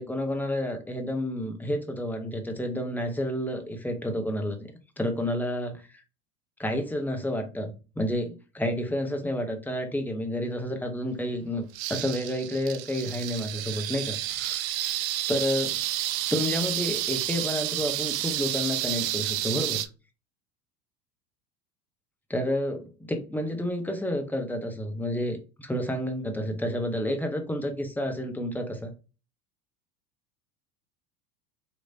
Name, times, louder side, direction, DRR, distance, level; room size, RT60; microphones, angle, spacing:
voice 1, 0.0-6.0 6.6-11.6 11.9-14.7 15.3-15.8 16.3-19.8 22.3-28.9, left 1 dB, 5° left, 0.7 m, -30 dB
sound 1, 11.7-19.9, right 14 dB, 60° right, 0.5 m, -30 dB
3.2 x 3.0 x 2.6 m
hypercardioid pair, 85°, 48 cm